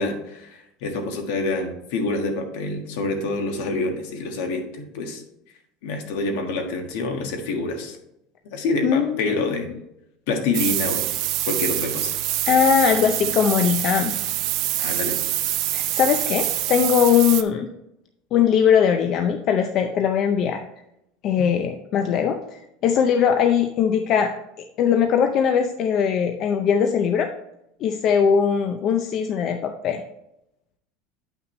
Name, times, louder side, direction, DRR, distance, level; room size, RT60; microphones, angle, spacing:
voice 1, 0.0-5.2 5.8-8.0 8.5-9.7 10.3-11.1 11.5-12.2 14.8-15.2, left 2 dB, 65° left, 4 dB, 1.5 m, -27 dB
voice 2, 8.8-9.6 12.5-14.1 15.7-17.7 18.3-20.6 21.2-24.3 24.8-27.3 27.8-30.0, left 7 dB, 35° left, 6 dB, 0.5 m, -20 dB
sound 1, 10.5-17.4, right 14 dB, 45° right, 0.5 m, -25 dB
9.1 x 5.9 x 3.1 m, 0.82 s
cardioid pair, 170°, 0 cm